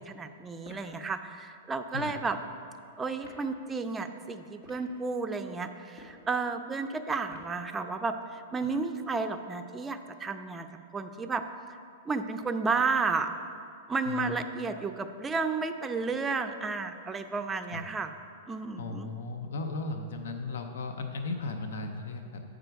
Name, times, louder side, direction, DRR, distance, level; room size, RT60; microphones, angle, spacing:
voice 1, 0.0-2.4 3.0-10.7 10.9-11.4 12.1-13.3 13.9-18.1 18.5-19.1, right 4 dB, 15° right, 7 dB, 0.4 m, -32 dB
sound 1, 0.6-0.9 1.9-2.2 3.2-3.4 4.5-4.9 5.8-6.2 7.3-7.6, equal, 55° left, 1.7 m, -50 dB
voice 2, 14.1-14.5 17.7-17.8 18.8-22.4, left 3 dB, 75° left, 5 dB, 0.6 m, -36 dB
7.8 x 4.9 x 4.6 m, 2.4 s
hypercardioid pair, 120°, 0 cm